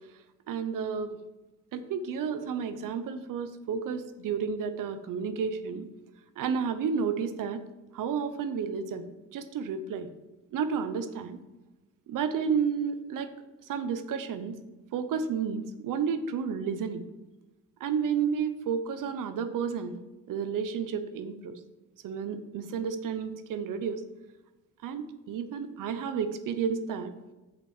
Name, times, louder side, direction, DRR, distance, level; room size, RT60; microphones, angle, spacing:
voice 1, 0.5-1.2 1.7-5.9 6.4-7.6 7.9-9.1 9.3-10.1 10.5-11.4 12.1-13.3 13.7-14.6 14.9-17.0 17.8-20.0 20.3-21.6 22.0-24.0 24.8-27.1, right 6 dB, 85° right, 9 dB, 0.9 m, -31 dB
7.3 x 5.3 x 7.1 m, 1.1 s
cardioid pair, 115°, 31 cm